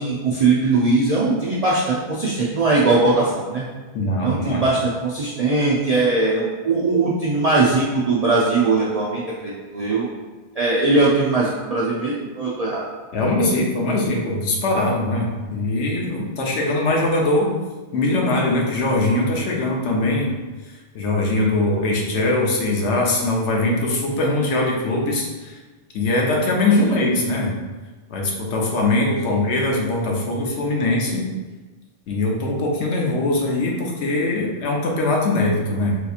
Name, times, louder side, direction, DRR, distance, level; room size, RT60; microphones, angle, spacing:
voice 1, 0.0-3.7 4.2-10.1 10.5-12.8 26.8-26.9 29.0-29.5, right 3 dB, 60° right, -6 dB, 0.4 m, -20 dB
voice 2, 3.9-4.7 13.1-17.5 17.9-20.3 20.9-25.6 25.9-27.5 28.1-31.3 32.1-36.0, left 2 dB, 70° left, -1 dB, 1.0 m, -21 dB
4.0 x 2.8 x 2.4 m, 1.2 s
omnidirectional pair, 1.2 m